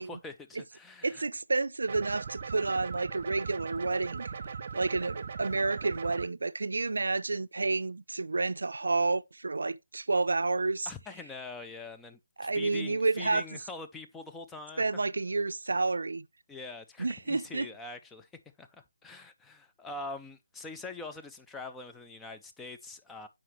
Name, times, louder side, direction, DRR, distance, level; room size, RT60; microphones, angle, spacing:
voice 1, 0.0-1.3 10.9-12.2 12.5-14.8 16.5-18.3 18.6-23.3, left 3 dB, 5° left, 0.4 m, -44 dB
voice 2, 1.0-4.3 4.7-10.9 12.4-13.4 14.8-16.3 17.0-17.7, right 3 dB, 75° right, 0.5 m, -30 dB
sound 1, 1.9-6.3, right 6 dB, 40° right, 0.7 m, -39 dB
7.5 x 5.0 x 3.1 m
figure-of-eight pair, 160°, 0 cm